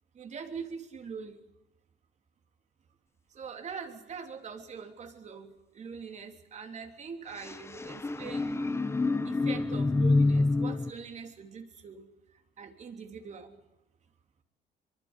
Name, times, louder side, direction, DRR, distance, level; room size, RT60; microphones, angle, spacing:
voice 1, 0.1-1.4 3.3-8.5 9.2-12.1 12.6-13.6, right 6 dB, 45° right, 5 dB, 3.4 m, -43 dB
sound 1, 7.4-10.9, left 3 dB, 15° left, 1.2 m, -27 dB
24.0 x 23.5 x 8.2 m, 0.90 s
cardioid pair, 110°, 17 cm